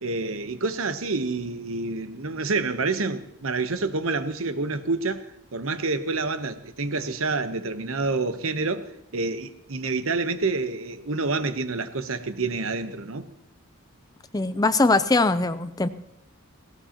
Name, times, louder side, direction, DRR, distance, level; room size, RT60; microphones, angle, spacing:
voice 1, 0.0-5.2 5.5-13.3, right 3 dB, 75° right, 1.0 m, -28 dB
voice 2, 14.3-15.9, left 3 dB, 15° left, 0.5 m, -21 dB
17.5 x 17.5 x 2.9 m
head